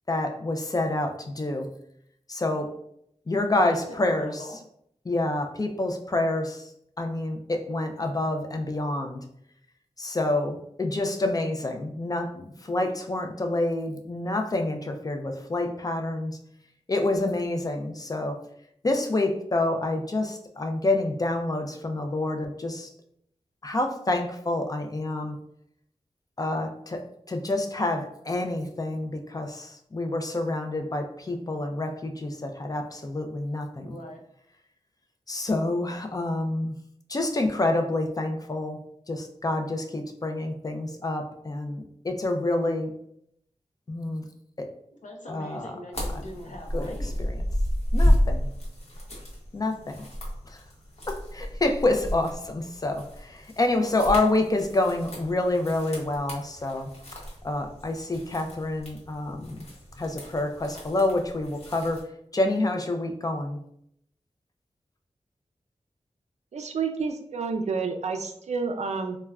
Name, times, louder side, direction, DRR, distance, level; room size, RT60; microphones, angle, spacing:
voice 1, 0.1-1.7 2.3-2.8 3.3-4.4 5.1-6.7 7.0-9.2 10.0-16.4 16.9-18.4 18.8-22.9 23.6-25.4 26.4-34.0 35.3-36.7 37.1-38.8 39.1-42.9 43.9-44.3 44.6-44.7 45.3-45.7 46.7-46.9 47.2-47.4 47.9-48.5 49.5-50.1 50.4-50.6 51.1-56.9 57.4-59.7 60.0-63.6, left 2 dB, 30° left, 5 dB, 0.3 m, -28 dB
voice 2, 3.6-4.6 33.8-34.2 45.0-47.3, left 1 dB, 85° left, 0 dB, 0.6 m, -42 dB
sound 1, 45.9-62.0, equal, 60° left, 0.9 m, -31 dB
voice 3, 66.5-69.2, right 5 dB, 65° right, 5 dB, 0.4 m, -29 dB
3.3 x 2.1 x 2.3 m, 0.71 s
wide cardioid pair, 90°, 12 cm